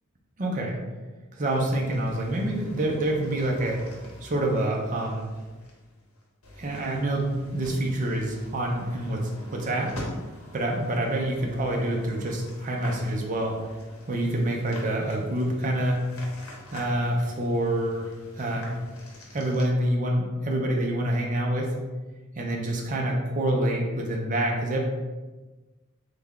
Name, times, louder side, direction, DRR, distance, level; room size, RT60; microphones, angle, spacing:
voice 1, 0.4-0.8 1.3-3.8 4.2-5.3 6.6-9.9 10.5-13.6 14.1-16.0 16.7-18.7 19.3-21.7 22.4-24.8, right 1 dB, 35° right, 0 dB, 0.5 m, -27 dB
sound 1, 1.4-19.6, left 1 dB, 80° left, 0.8 m, -45 dB
3.2 x 2.2 x 3.6 m, 1.2 s
head